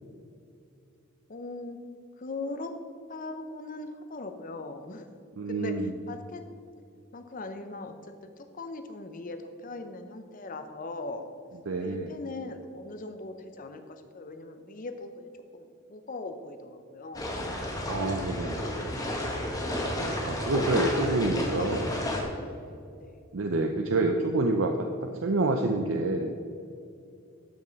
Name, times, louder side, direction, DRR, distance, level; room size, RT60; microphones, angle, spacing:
voice 1, 1.3-1.8 2.2-2.7 3.1-5.1 5.5-6.4 7.1-11.3 11.8-17.3 20.6-23.2, left 2 dB, 40° left, 7 dB, 0.6 m, -40 dB
voice 2, 5.4-5.9 11.7-12.1 17.9-18.8 20.0-21.9 23.3-26.3, right 2 dB, 60° right, 4 dB, 0.5 m, -28 dB
sound 1, 17.1-22.2, left 1 dB, 15° left, 1.1 m, -31 dB
12.5 x 5.3 x 4.0 m, 2.5 s
head